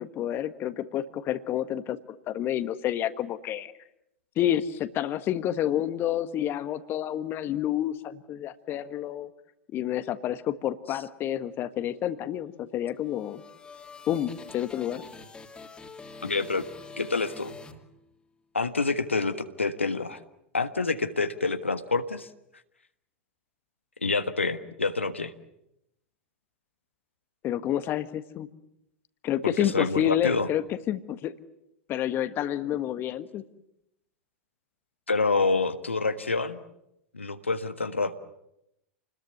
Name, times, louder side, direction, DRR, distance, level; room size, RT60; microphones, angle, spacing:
voice 1, 0.0-3.7 4.4-9.3 9.7-13.4 14.1-15.0 27.4-28.5 29.2-31.3 31.9-33.4, left 11 dB, 35° left, 12 dB, 1.5 m, -29 dB
sound 1, 12.8-18.4, left 4 dB, 15° left, 2.9 m, -46 dB
voice 2, 16.2-16.6 17.0-17.5 18.5-20.2 20.5-22.3 24.0-25.3 29.4-30.5 35.1-36.6 37.1-38.2, left 3 dB, 85° left, 9 dB, 1.4 m, -27 dB
29.0 x 21.0 x 8.1 m, 0.83 s
figure-of-eight pair, 90°, 6 cm